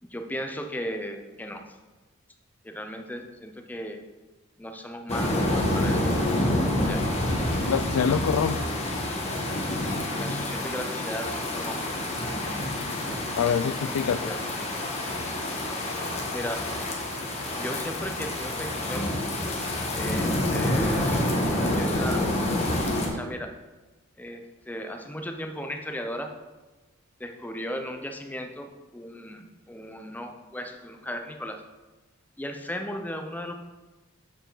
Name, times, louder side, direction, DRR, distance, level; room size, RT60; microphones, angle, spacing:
voice 1, 0.0-1.8 2.6-4.0 4.6-6.0 6.8-7.0 10.1-12.0 14.2-14.4 16.3-16.7 17.6-19.1 19.9-21.3 21.7-22.4 23.0-23.5 24.2-26.3 27.2-31.6 32.4-33.5, equal, 10° left, 0.6 m, -36 dB
sound 1, 5.1-23.1, left 1 dB, 30° left, 1.2 m, -28 dB
voice 2, 7.6-8.7 13.4-14.3, left 7 dB, 80° left, 0.4 m, -25 dB
6.9 x 6.9 x 3.9 m
head